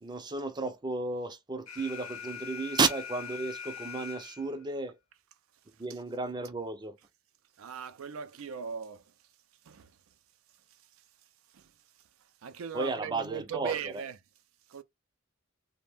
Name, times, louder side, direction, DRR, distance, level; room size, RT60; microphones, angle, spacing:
voice 1, 0.0-5.0 5.8-7.0 12.7-14.0, right 3 dB, 20° right, 0.4 m, -33 dB
Alarm, 1.7-4.6, left 7 dB, 75° left, 0.8 m, -42 dB
voice 2, 7.6-9.0 9.7-9.9 11.5-11.7 12.4-14.2 14.7-14.8, right 7 dB, 80° right, 0.4 m, -39 dB
2.6 x 2.1 x 3.4 m
head